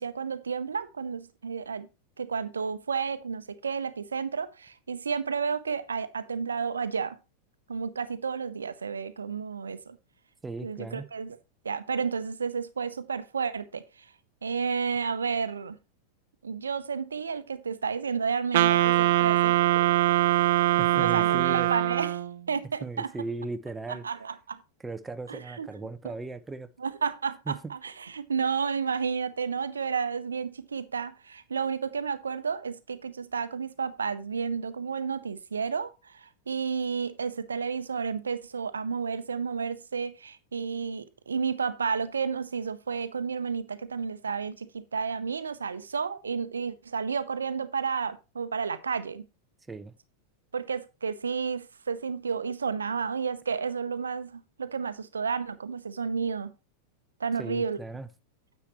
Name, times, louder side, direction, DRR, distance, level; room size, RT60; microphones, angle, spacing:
voice 1, 0.0-1.9 2.2-7.2 7.7-10.0 10.6-11.4 11.6-14.1 14.4-15.8 16.4-19.6 20.9-22.2 22.5-23.1 23.9-24.6 25.3-25.7 26.0-26.1 26.8-49.3 50.5-56.5 57.2-57.8, right 6 dB, 70° right, 0.8 m, -31 dB
voice 2, 10.4-11.1 20.8-21.7 22.8-24.0 24.8-26.7 27.5-27.7 49.7-49.9 57.4-58.1, right 3 dB, 10° right, 0.7 m, -37 dB
Wind instrument woodwind instrument, 18.5-22.4, right 14 dB, 55° right, 0.3 m, -23 dB
10.0 x 8.2 x 3.1 m
figure-of-eight pair, 90°, 0 cm